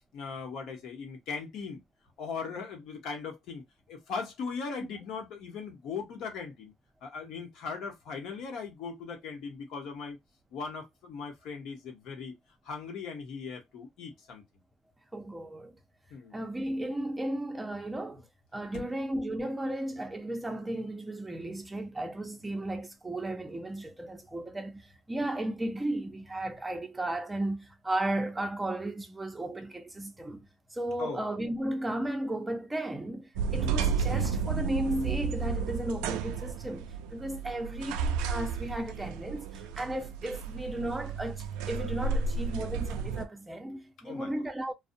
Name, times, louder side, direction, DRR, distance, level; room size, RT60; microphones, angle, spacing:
voice 1, 0.1-1.8 2.2-3.6 3.9-6.7 7.0-10.2 10.5-12.3 12.6-14.4 16.1-16.3 18.7-18.9 31.0-31.2 33.5-33.6 44.0-44.3, left 5 dB, 65° left, 1.0 m, -39 dB
voice 2, 15.1-15.8 16.3-18.2 18.5-30.5 30.7-44.7, right 1 dB, 10° right, 0.5 m, -35 dB
sound 1, 33.4-43.3, right 5 dB, 90° right, 0.3 m, -32 dB
2.6 x 2.0 x 2.6 m
cardioid pair, 125°, 0 cm